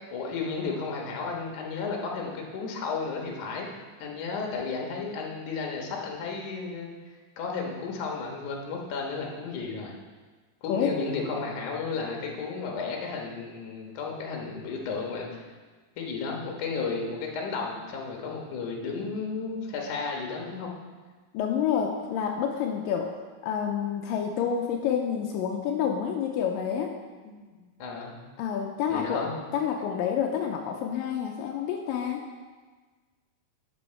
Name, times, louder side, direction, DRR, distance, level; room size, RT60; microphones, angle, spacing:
voice 1, 0.1-3.7 4.0-6.9 7.4-9.9 10.6-15.4 16.0-20.7 27.2-28.1 28.9-29.3, left 4 dB, 65° left, 0 dB, 2.7 m, -33 dB
voice 2, 21.3-23.2 23.4-26.9 28.4-29.3 29.5-32.2, left 8 dB, 85° left, 2 dB, 2.3 m, -28 dB
11.5 x 6.2 x 4.4 m, 1.4 s
omnidirectional pair, 3.9 m